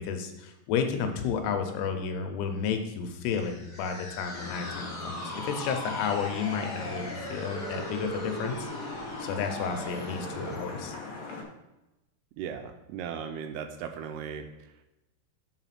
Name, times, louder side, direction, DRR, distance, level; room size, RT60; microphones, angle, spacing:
voice 1, 0.0-8.7 9.0-10.9, left 6 dB, 80° left, 5 dB, 2.7 m, -32 dB
sound 1, 3.2-10.7, equal, 45° left, 2.0 m, -39 dB
Vehicle horn car horn honking / Traffic noise roadway noise, 4.3-11.4, left 3 dB, 65° left, 1.8 m, -42 dB
voice 2, 12.4-14.8, right 7 dB, 85° right, 6 dB, 2.4 m, -38 dB
5.1 x 4.9 x 5.8 m, 0.97 s
omnidirectional pair, 4.7 m